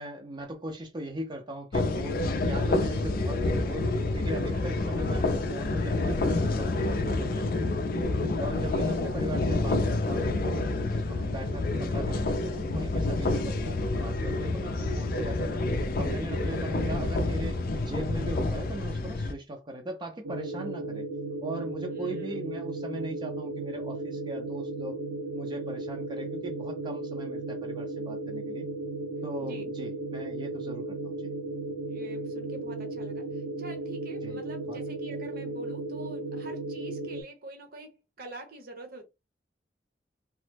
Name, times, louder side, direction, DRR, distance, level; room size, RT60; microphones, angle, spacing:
voice 1, 0.0-7.9 8.4-15.6 16.0-21.1 21.4-25.0 25.3-28.7 29.2-31.2 34.2-34.4 34.7-34.8, right 1 dB, 25° right, 0.4 m, -39 dB
sound 1, 1.7-19.3, left 2 dB, 55° left, 0.4 m, -28 dB
voice 2, 8.5-8.9 13.2-13.5 21.8-22.5 29.4-29.6 31.9-39.1, right 2 dB, 55° right, 0.8 m, -46 dB
sound 2, 20.2-37.2, right 2 dB, 85° right, 0.6 m, -35 dB
3.0 x 2.0 x 3.2 m
head